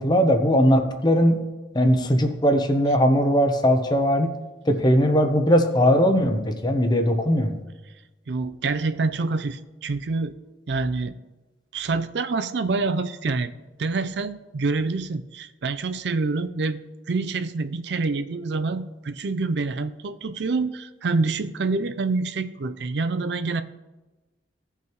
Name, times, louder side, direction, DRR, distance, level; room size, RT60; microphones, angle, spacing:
voice 1, 0.0-1.4 1.7-4.4 4.6-7.6, equal, 25° left, 6 dB, 0.8 m, -19 dB
voice 2, 8.3-10.3 10.7-11.1 11.7-13.5 13.8-16.8 17.1-23.6, right 3 dB, 70° right, 11 dB, 0.5 m, -26 dB
17.0 x 5.7 x 3.1 m, 1.1 s
head